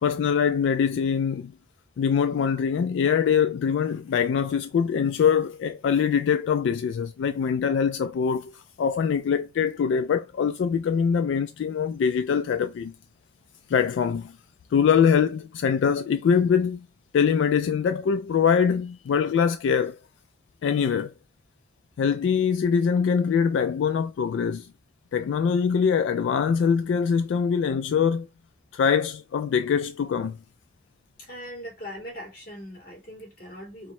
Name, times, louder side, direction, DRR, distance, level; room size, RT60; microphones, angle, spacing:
voice 1, 0.0-1.5 2.0-12.9 13.7-14.4 14.7-16.9 17.1-20.0 20.6-21.1 22.0-24.7 25.1-28.3 28.7-30.4, left 7 dB, 85° left, 0.3 m, -23 dB
voice 2, 31.2-33.9, equal, 55° left, 2.2 m, -40 dB
4.3 x 2.1 x 4.2 m
head